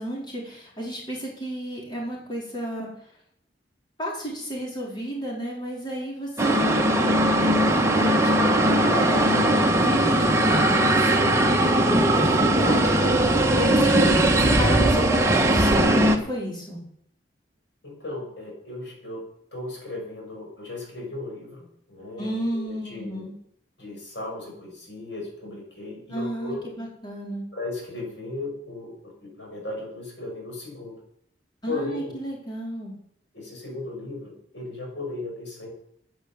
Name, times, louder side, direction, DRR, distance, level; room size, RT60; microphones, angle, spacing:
voice 1, 0.0-2.9 4.0-16.8 22.2-23.3 26.1-27.4 31.6-32.9, equal, 25° left, -3 dB, 4.6 m, -32 dB
sound 1, 6.4-16.2, right 1 dB, 15° right, 1.6 m, -19 dB
voice 2, 17.8-19.2 19.5-23.3 23.8-26.7 27.5-31.0 31.7-32.1 33.3-35.7, left 2 dB, 80° left, 1 dB, 6.0 m, -36 dB
11.0 x 9.4 x 8.8 m, 0.71 s
head